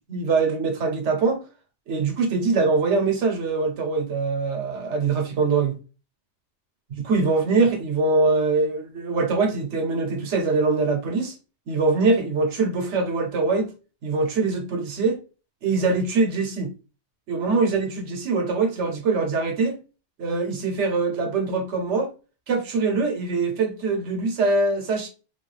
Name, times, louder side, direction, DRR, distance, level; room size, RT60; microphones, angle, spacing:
voice 1, 0.1-1.4 1.9-5.8 7.0-11.3 11.7-13.7 14.0-15.2 15.6-16.7 17.3-19.8 20.2-22.1 22.5-25.1, right 4 dB, 85° right, 1.1 m, -23 dB
3.1 x 2.3 x 3.1 m
omnidirectional pair, 1.2 m